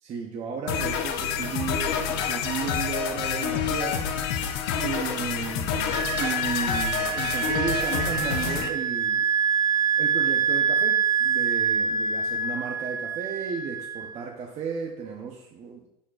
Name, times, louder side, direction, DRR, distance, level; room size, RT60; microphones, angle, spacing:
voice 1, 0.0-4.1 4.8-9.3 10.0-15.9, right 6 dB, 35° right, 1 dB, 0.8 m, -34 dB
sound 1, 0.7-8.7, left 7 dB, 60° left, 0.9 m, -28 dB
Wind instrument woodwind instrument, 5.9-14.2, right 6 dB, 15° right, 0.4 m, -26 dB
10.5 x 4.2 x 2.5 m, 0.80 s
supercardioid pair, 130°, 20 cm